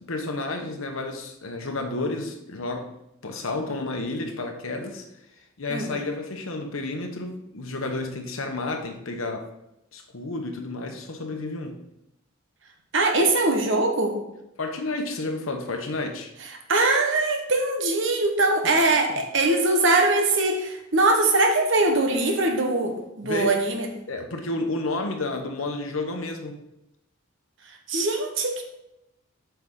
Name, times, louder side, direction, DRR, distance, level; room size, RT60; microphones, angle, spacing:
voice 1, 0.1-2.9 3.2-5.1 5.6-9.5 9.9-11.8 14.6-16.3 18.6-18.7 19.1-19.2 23.2-23.5 24.1-26.6, left 2 dB, 85° left, 4 dB, 1.1 m, -31 dB
voice 2, 12.9-14.2 16.7-23.9 27.9-28.6, right 2 dB, 65° right, 3 dB, 1.2 m, -22 dB
8.0 x 5.7 x 3.8 m, 0.87 s
head